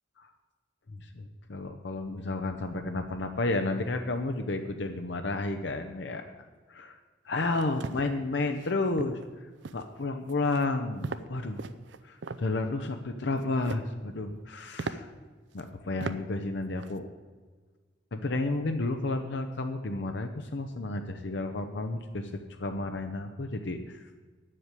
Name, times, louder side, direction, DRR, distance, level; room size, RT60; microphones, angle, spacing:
voice 1, 0.9-6.3 6.7-7.0 7.2-9.2 9.7-11.6 12.0-15.1 15.5-17.1 18.1-24.1, left 2 dB, 75° left, 6 dB, 0.7 m, -32 dB
sound 1, 7.5-8.0 8.6-8.7 9.0-9.3 9.6-9.9 10.3-10.6 11.0-11.3 11.6-12.4 13.4-13.9 14.3-14.4 14.8-15.0 15.6-15.7 16.0-16.2 16.6-16.9, right 4 dB, 80° right, 0.6 m, -38 dB
9.1 x 7.6 x 8.3 m, 1.4 s
head